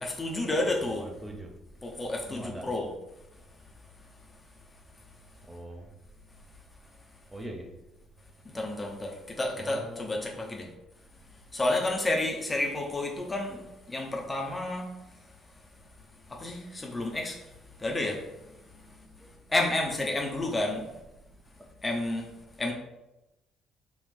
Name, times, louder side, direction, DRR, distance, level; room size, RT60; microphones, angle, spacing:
voice 1, 0.0-1.0 1.8-2.9 8.5-10.7 11.5-13.6 13.9-14.9 16.3-17.4 17.8-18.2 19.5-20.8 21.8-22.3 22.6-22.7, left 2 dB, 25° left, 0 dB, 0.8 m, -30 dB
voice 2, 1.0-1.5 2.3-2.6 5.5-5.9 7.3-7.7 9.6-10.4, right 1 dB, 15° right, 1 dB, 0.8 m, -42 dB
4.1 x 2.5 x 3.4 m, 0.95 s
figure-of-eight pair, 50°, 0 cm